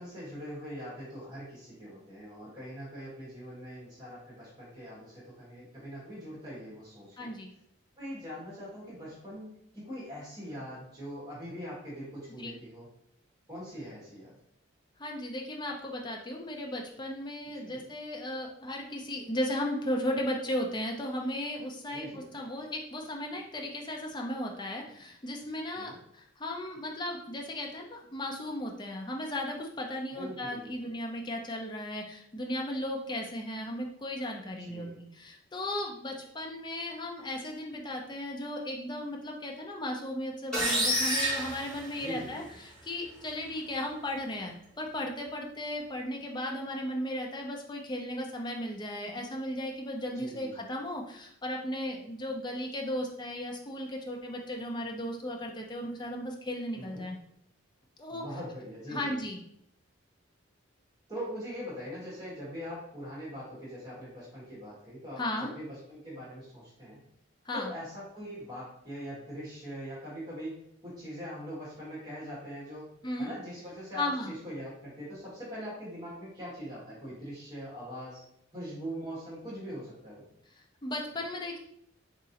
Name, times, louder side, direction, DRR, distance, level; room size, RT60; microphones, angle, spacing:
voice 1, 0.0-7.4 8.0-12.9 13.5-14.3 17.5-17.8 21.8-22.3 25.7-26.0 30.1-30.9 34.6-35.0 42.0-42.6 50.1-50.7 56.7-57.1 58.1-59.2 61.1-67.0 67.5-70.6 70.8-72.9 73.2-78.2 78.5-80.2, equal, 20° right, -8 dB, 1.4 m, -42 dB
voice 2, 7.2-7.5 12.4-12.5 15.0-57.2 58.0-58.2 58.9-59.4 65.2-65.5 67.5-67.7 73.0-73.3 74.0-74.3 80.8-81.6, left 1 dB, 20° left, 1 dB, 0.5 m, -36 dB
sound 1, 40.5-42.5, equal, 5° left, 1.0 m, -29 dB
3.7 x 3.0 x 2.8 m, 0.73 s
head